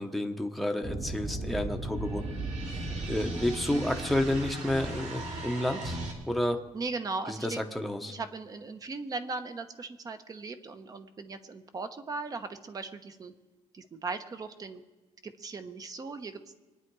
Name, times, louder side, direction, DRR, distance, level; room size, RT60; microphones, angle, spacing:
voice 1, 0.0-2.4 3.0-6.0 6.3-6.6 7.3-8.1, left 1 dB, ahead, 4 dB, 0.9 m, -30 dB
sound 1, 0.8-6.1, right 2 dB, 65° right, 2.9 m, -36 dB
voice 2, 6.7-7.6 8.1-13.3 13.7-14.8 15.2-16.4, right 3 dB, 30° right, 9 dB, 1.0 m, -38 dB
24.0 x 9.8 x 4.7 m, 1.2 s
cardioid pair, 160°, 13 cm